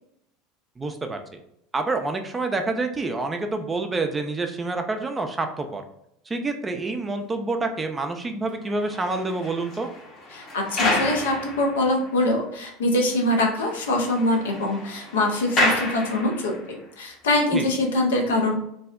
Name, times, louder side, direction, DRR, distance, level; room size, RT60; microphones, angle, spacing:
voice 1, 0.8-1.2 1.7-5.8 6.3-9.9 17.5-17.7, right 3 dB, 20° right, 5 dB, 0.4 m, -27 dB
sound 1, 8.6-12.3 12.6-12.7 13.1-13.2 13.5-16.7 17.4-17.6, left 2 dB, 45° left, 0.8 m, -30 dB
voice 2, 10.3-18.6, left 1 dB, 75° left, 2 dB, 0.5 m, -24 dB
2.6 x 2.0 x 2.3 m, 0.76 s
hypercardioid pair, 75°, 0 cm